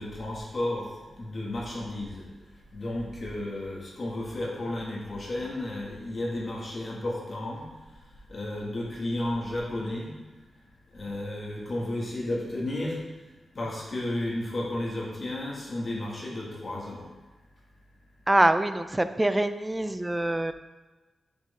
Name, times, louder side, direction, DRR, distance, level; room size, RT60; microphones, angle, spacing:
voice 1, 0.0-2.3 2.7-7.6 8.3-10.1 10.9-13.0 13.5-17.0, left 1 dB, 40° left, -4 dB, 2.2 m, -33 dB
voice 2, 18.3-20.5, right 1 dB, 15° right, 10 dB, 0.4 m, -24 dB
8.4 x 6.4 x 3.7 m, 1.2 s
wide cardioid pair, 110°, 0 cm